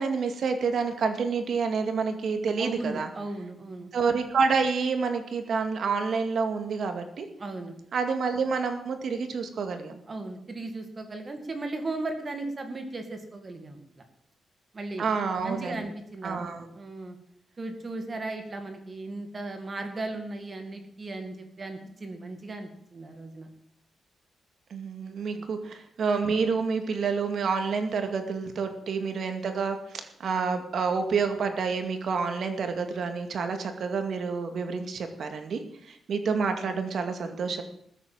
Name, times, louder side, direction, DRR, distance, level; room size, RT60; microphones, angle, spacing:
voice 1, 0.0-3.1 3.9-7.3 7.9-10.0 15.0-15.8 16.2-16.6 24.7-35.6 35.9-37.6, right 5 dB, 60° right, 6 dB, 2.2 m, -28 dB
voice 2, 2.6-3.9 7.4-7.8 10.1-14.0 14.7-15.1 15.4-17.2 17.6-23.5 25.4-25.5, right 2 dB, 30° right, 6 dB, 2.1 m, -36 dB
19.5 x 8.4 x 7.7 m, 0.70 s
cardioid pair, 125°, 0 cm